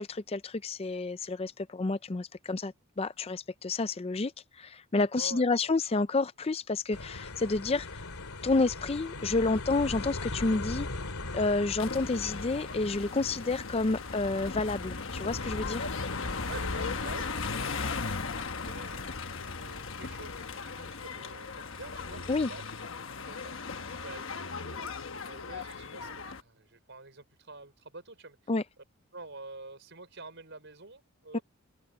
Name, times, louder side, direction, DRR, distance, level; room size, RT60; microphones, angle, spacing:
voice 1, 0.0-8.0 8.4-10.9 11.3-15.9 22.3-22.5 28.5-28.6 31.3-31.4, left 3 dB, 25° left, 0.5 m, -30 dB
voice 2, 5.2-5.6 16.5-19.3 19.6-22.6 23.3-24.9 25.2-28.5 29.1-31.4, right 3 dB, 55° right, 5.8 m, -48 dB
sound 1, 6.9-20.5, left 2 dB, 85° left, 2.6 m, -40 dB
sound 2, 11.8-26.4, left 4 dB, 60° left, 1.2 m, -38 dB
head